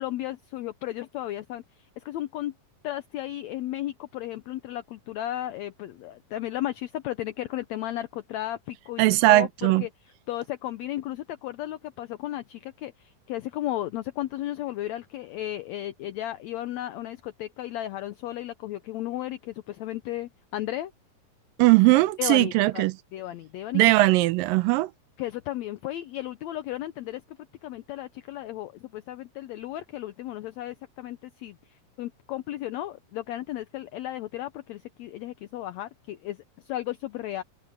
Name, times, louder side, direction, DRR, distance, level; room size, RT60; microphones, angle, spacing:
voice 1, 0.0-2.5 2.8-9.9 10.3-20.9 22.2-22.8 23.1-23.8 25.2-37.4, left 14 dB, 80° left, 1.5 m, -34 dB
voice 2, 9.0-9.8 21.6-22.9 23.7-24.9, right 19 dB, 85° right, 2.4 m, -19 dB
omnidirectional pair, 4.0 m